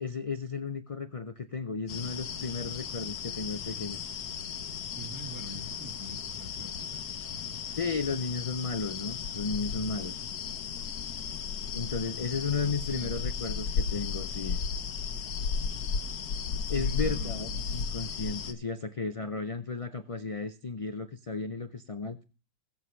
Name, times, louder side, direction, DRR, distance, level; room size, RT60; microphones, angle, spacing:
voice 1, 0.0-4.0 7.7-10.2 11.7-14.6 16.7-22.2, left 4 dB, 65° left, 0.3 m, -34 dB
sound 1, 1.9-18.5, left 6 dB, 90° left, 1.4 m, -35 dB
voice 2, 4.9-7.2 7.4-7.7 10.0-10.2 12.2-13.2 16.6-18.0, right 2 dB, 15° right, 1.5 m, -46 dB
21.0 x 7.3 x 3.2 m
omnidirectional pair, 1.5 m